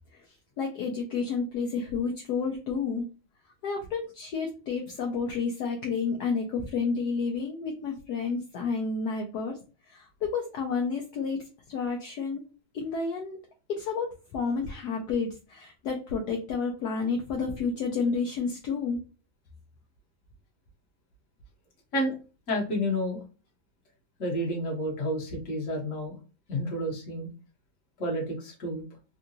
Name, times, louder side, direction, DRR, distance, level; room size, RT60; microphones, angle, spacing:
voice 1, 0.6-3.1 3.6-9.6 9.9-11.4 11.7-12.4 12.7-13.4 13.7-19.0, left 5 dB, 70° left, 2 dB, 1.0 m, -30 dB
voice 2, 22.5-23.2 24.2-26.1 26.5-27.3 28.0-28.8, equal, 45° left, 0 dB, 1.4 m, -30 dB
3.7 x 2.3 x 2.7 m, 0.33 s
omnidirectional pair, 2.1 m